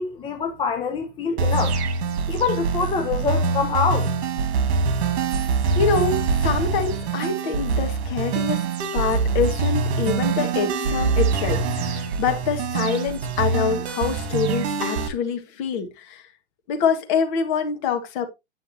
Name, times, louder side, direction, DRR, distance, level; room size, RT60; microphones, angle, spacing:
voice 1, 0.0-1.8 2.3-4.1, left 5 dB, 15° left, 0.8 m, -25 dB
sound 1, 1.4-15.1, right 4 dB, 65° right, 1.9 m, -24 dB
voice 2, 5.8-8.6 8.9-16.2 16.7-18.3, left 5 dB, 40° left, 1.8 m, -25 dB
9.4 x 6.3 x 2.8 m
hypercardioid pair, 145°, 35 cm